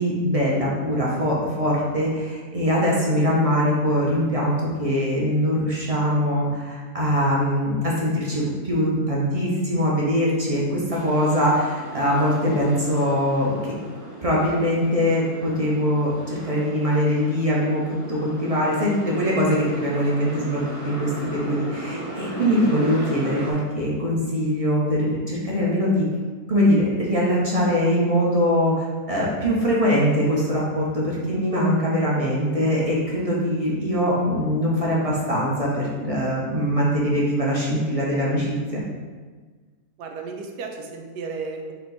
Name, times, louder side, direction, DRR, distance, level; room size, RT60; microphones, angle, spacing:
voice 1, 0.0-13.7 14.2-26.0 26.5-38.8, equal, 35° right, -5 dB, 0.6 m, -22 dB
sound 1, 10.9-23.5, right 1 dB, 65° right, 1.8 m, -37 dB
voice 2, 40.0-41.7, right 4 dB, 90° right, 3 dB, 1.2 m, -33 dB
4.4 x 3.0 x 4.0 m, 1.4 s
omnidirectional pair, 1.7 m